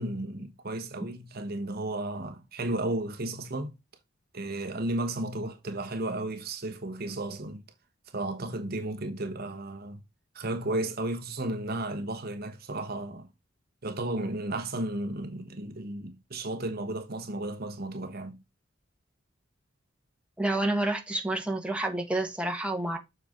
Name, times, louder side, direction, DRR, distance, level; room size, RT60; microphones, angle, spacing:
voice 1, 0.0-3.7 4.3-7.6 8.1-10.0 10.3-13.3 13.8-18.4, right 1 dB, 50° right, 1.1 m, -33 dB
voice 2, 20.4-23.0, right 2 dB, 5° right, 1.5 m, -29 dB
7.2 x 4.5 x 5.1 m
head